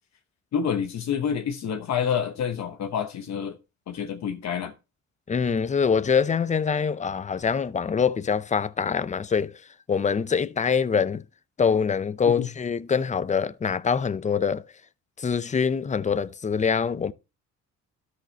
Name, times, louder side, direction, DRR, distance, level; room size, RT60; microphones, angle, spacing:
voice 1, 0.5-3.6 3.9-4.7 12.4-12.5, left 7 dB, 60° left, 1.1 m, -28 dB
voice 2, 5.3-9.5 9.9-11.2 11.6-14.6 15.2-17.1, left 6 dB, 25° left, 0.6 m, -24 dB
13.0 x 6.4 x 2.9 m
cardioid pair, 90°, 30 cm